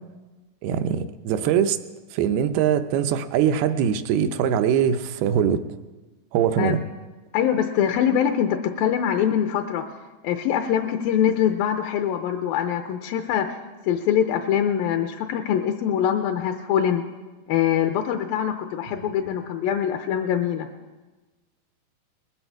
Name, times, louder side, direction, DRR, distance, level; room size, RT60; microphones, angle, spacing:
voice 1, 0.6-1.8 2.1-5.6 6.3-6.8 19.0-19.1, right 8 dB, 85° right, 9 dB, 2.6 m, -22 dB
voice 2, 7.3-9.9 10.2-13.6 13.9-17.0 17.5-20.7, left 9 dB, 80° left, 6 dB, 2.4 m, -23 dB
20.5 x 13.0 x 4.7 m, 1.2 s
omnidirectional pair, 4.4 m